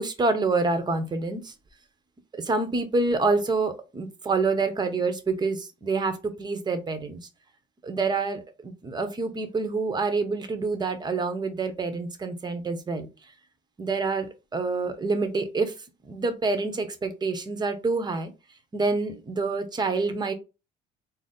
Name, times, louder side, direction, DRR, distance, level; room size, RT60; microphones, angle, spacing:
voice 1, 0.0-1.5 2.4-7.2 7.8-8.4 8.8-13.1 13.8-14.3 14.5-15.7 16.0-18.3 18.7-20.3, right 3 dB, 25° right, 8 dB, 0.8 m, -27 dB
4.0 x 2.0 x 3.8 m, 0.28 s
cardioid pair, 110°, 17 cm